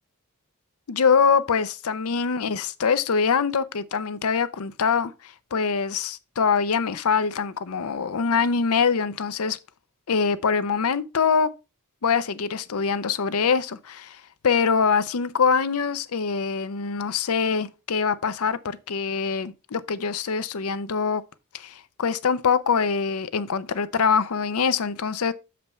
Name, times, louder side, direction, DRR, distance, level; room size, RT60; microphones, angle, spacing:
voice 1, 0.9-9.6 10.1-11.5 12.0-14.2 14.4-21.2 21.5-25.3, left 5 dB, 70° left, 0.6 m, -24 dB
6.8 x 5.1 x 4.3 m
head